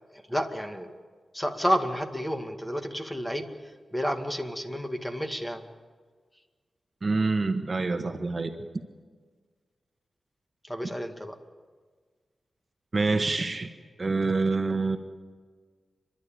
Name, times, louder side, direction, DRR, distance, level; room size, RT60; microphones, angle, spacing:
voice 1, 0.1-0.9 1.3-5.7 10.6-11.4, equal, 10° left, 6 dB, 2.2 m, -31 dB
voice 2, 7.0-8.6 12.9-13.7 14.0-15.0, right 3 dB, 40° right, 7 dB, 1.4 m, -26 dB
29.0 x 12.0 x 9.0 m, 1.5 s
cardioid pair, 60°, 0 cm